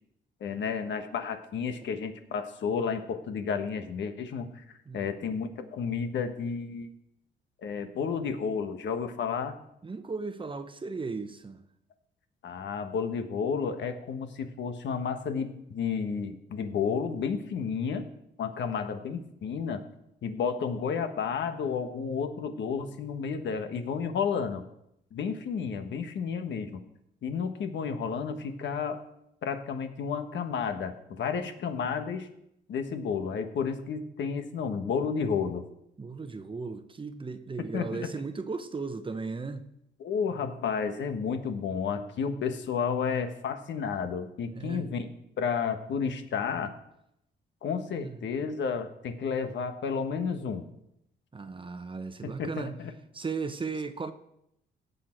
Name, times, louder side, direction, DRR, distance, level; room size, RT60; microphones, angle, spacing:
voice 1, 0.4-4.6 4.9-6.9 7.6-9.6 12.4-18.1 18.4-19.8 20.2-24.6 25.1-26.8 27.2-29.0 29.4-32.3 32.7-35.6 37.7-38.1 40.0-45.1 45.4-46.7 47.6-50.6 52.2-52.9, left 6 dB, 65° left, 1.3 m, -31 dB
voice 2, 9.8-11.6 36.0-39.7 44.5-44.8 48.0-48.1 51.3-52.7 53.1-54.1, right 4 dB, 25° right, 1.0 m, -36 dB
16.5 x 6.7 x 4.5 m
cardioid pair, 90°, 20 cm